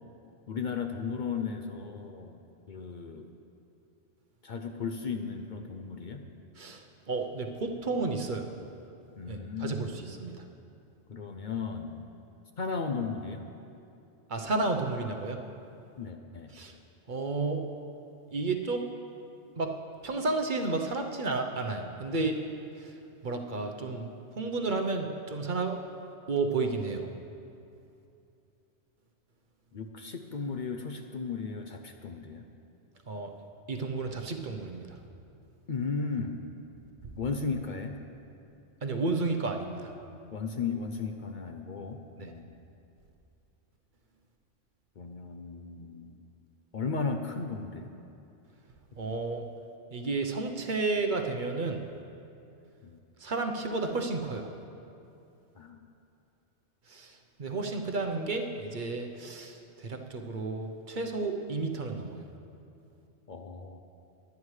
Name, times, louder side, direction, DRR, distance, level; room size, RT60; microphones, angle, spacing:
voice 1, 0.5-2.4 2.7-3.3 4.4-6.2 9.2-10.1 11.1-12.1 12.6-13.4 16.0-16.5 29.7-32.4 35.7-36.4 37.2-38.0 40.3-42.5 45.0-46.2 46.7-47.9 52.8-53.0 55.6-55.9 63.3-63.8, left 5 dB, 50° left, 5 dB, 0.6 m, -35 dB
voice 2, 6.6-8.5 9.3-10.3 14.3-15.4 16.5-16.7 17.1-17.6 18.3-18.8 19.6-19.7 20.0-22.4 22.8-22.9 23.2-25.8 26.3-27.1 33.1-33.3 33.7-35.0 38.8-39.9 42.2-42.3 49.0-49.4 49.9-51.8 53.2-54.5 56.9-62.2, right 3 dB, 45° right, 3 dB, 0.9 m, -32 dB
21.5 x 9.5 x 3.2 m, 2.7 s
omnidirectional pair, 1.3 m